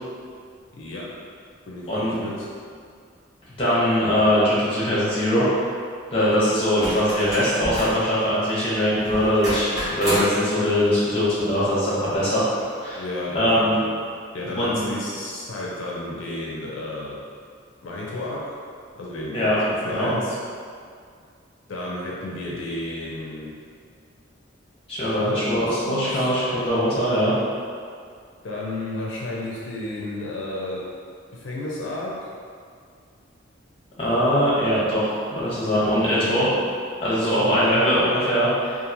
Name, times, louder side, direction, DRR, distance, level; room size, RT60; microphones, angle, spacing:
voice 1, 0.7-1.0 1.7-2.5 13.0-13.9 14.3-17.2 17.8-18.4 18.9-20.4 21.7-23.5 25.2-26.3 28.4-30.8 31.3-32.1 35.8-36.5 37.1-37.8, left 2 dB, 80° left, -5 dB, 0.5 m, -32 dB
voice 2, 1.9-2.2 3.6-5.5 6.1-12.4 12.8-13.0 13.3-13.8 14.6-14.8 19.3-19.6 19.8-20.1 24.9-27.3 34.0-36.5 37.0-38.8, equal, 30° left, -9 dB, 0.9 m, -21 dB
sound 1, 6.8-8.1 9.0-10.4 12.0-12.1, equal, 15° right, 0.9 m, -29 dB
2.9 x 2.5 x 2.5 m, 2.2 s
head